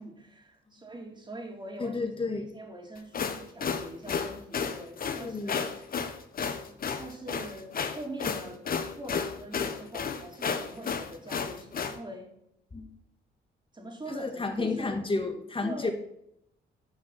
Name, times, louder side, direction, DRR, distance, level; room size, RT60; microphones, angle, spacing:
voice 1, 0.0-2.0 2.3-5.7 6.6-8.6 8.9-12.3 13.7-15.0 15.6-15.9, right 1 dB, 20° right, 1 dB, 3.3 m, -43 dB
voice 2, 1.8-2.5 5.2-5.6 12.7-12.9 14.1-15.9, left 3 dB, 25° left, 5 dB, 2.1 m, -31 dB
sound 1, 3.0-12.0, left 6 dB, 45° left, 1.3 m, -32 dB
11.0 x 5.6 x 6.0 m, 0.78 s
cardioid pair, 90°, 20 cm